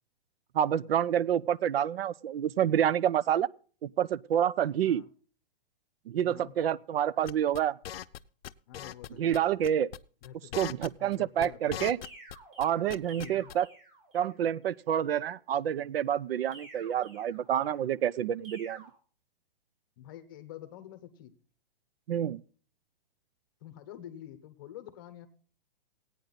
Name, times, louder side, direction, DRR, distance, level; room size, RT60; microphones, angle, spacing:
voice 1, 0.5-3.5 3.8-5.0 6.1-7.8 9.2-9.9 10.5-12.0 12.6-13.7 14.1-18.8 22.1-22.4, right 10 dB, 80° right, 0.5 m, -28 dB
sound 1, 7.3-8.2 8.4-9.1 9.3-9.4 9.6-10.0 10.2-12.4 12.6-13.5, left 11 dB, 85° left, 0.6 m, -39 dB
voice 2, 8.7-9.7 10.2-10.6 11.0-11.8 13.2-13.5 20.0-21.4 23.6-25.3, left 11 dB, 20° left, 0.8 m, -47 dB
sound 2, 12.0-14.4 16.5-17.9 18.4-18.9, right 2 dB, 60° right, 5.7 m, -52 dB
16.5 x 9.2 x 4.0 m
hypercardioid pair, 175°, 29 cm